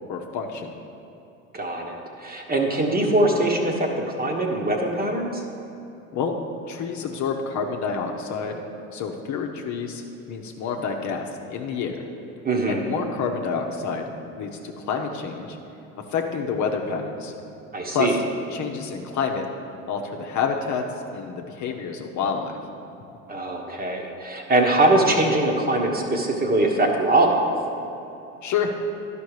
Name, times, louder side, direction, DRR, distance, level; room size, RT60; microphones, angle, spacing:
voice 1, 0.1-0.8 6.1-8.6 8.9-12.0 12.7-14.1 14.4-15.6 16.1-17.3 17.9-18.2 18.5-19.5 19.9-20.8 21.1-22.6 28.4-28.7, left 5 dB, 45° left, 3 dB, 0.9 m, -28 dB
voice 2, 1.5-5.4 12.4-12.8 17.7-18.2 23.3-27.5, right 2 dB, 25° right, 1 dB, 1.3 m, -22 dB
11.5 x 5.2 x 4.9 m, 2.9 s
hypercardioid pair, 70°, 39 cm